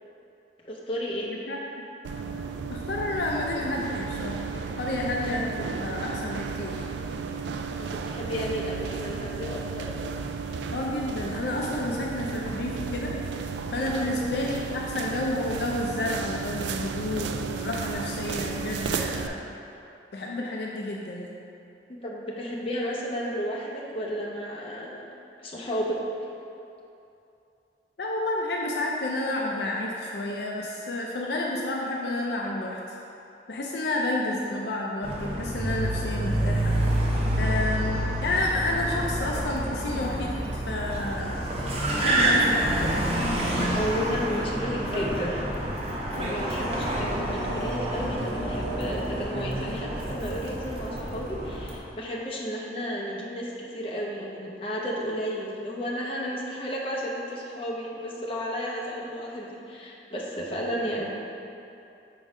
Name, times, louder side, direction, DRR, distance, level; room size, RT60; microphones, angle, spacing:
voice 1, 0.6-1.3 7.8-9.9 13.9-14.1 21.9-25.0 25.4-26.0 43.7-45.5 46.1-61.1, equal, 30° left, -5 dB, 0.8 m, -33 dB
voice 2, 1.3-1.8 2.7-4.4 4.8-6.8 10.7-13.1 13.7-19.4 20.1-21.3 28.0-32.8 33.5-36.7 37.3-41.4 41.9-43.0, left 2 dB, 65° left, -2 dB, 0.5 m, -30 dB
sound 1, 2.0-19.3, right 5 dB, 80° right, 0.3 m, -33 dB
Car, 35.0-51.8, right 1 dB, 35° right, 0.7 m, -28 dB
5.2 x 3.8 x 4.9 m, 2.7 s
head